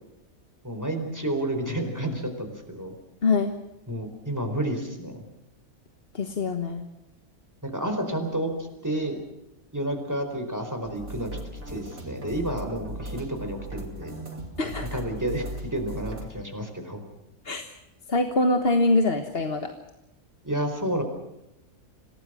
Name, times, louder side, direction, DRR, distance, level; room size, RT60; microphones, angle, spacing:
voice 1, 0.6-2.9 3.9-5.2 7.6-8.5 8.8-9.2 9.7-11.4 11.7-14.1 14.9-17.0 20.4-21.0, right 1 dB, 10° right, 5 dB, 4.4 m, -30 dB
voice 2, 3.2-3.5 6.1-6.9 14.6-15.0 17.4-17.6 18.1-19.7, left 2 dB, 45° left, 6 dB, 1.6 m, -24 dB
sound 1, 10.8-16.3, right 1 dB, 80° right, 4.0 m, -38 dB
27.0 x 18.5 x 6.2 m, 0.90 s
omnidirectional pair, 1.4 m